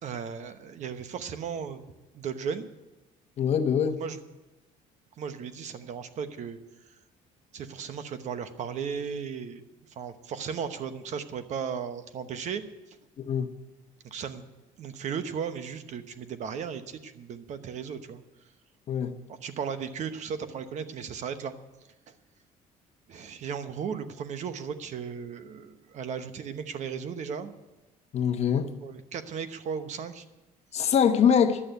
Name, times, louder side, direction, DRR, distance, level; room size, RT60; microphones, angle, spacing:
voice 1, 0.0-1.8 2.1-2.7 4.0-4.2 5.2-6.6 7.5-9.6 9.9-12.6 14.0-14.5 14.8-18.2 19.3-21.6 22.1-22.2 23.1-27.5 28.8-30.2, right 7 dB, 55° right, 1.0 m, -36 dB
voice 2, 3.4-4.0 13.2-13.5 18.9-19.1 28.1-28.7 30.7-31.6, left 7 dB, 45° left, 1.0 m, -23 dB
11.0 x 8.5 x 9.2 m
cardioid pair, 130°, 15 cm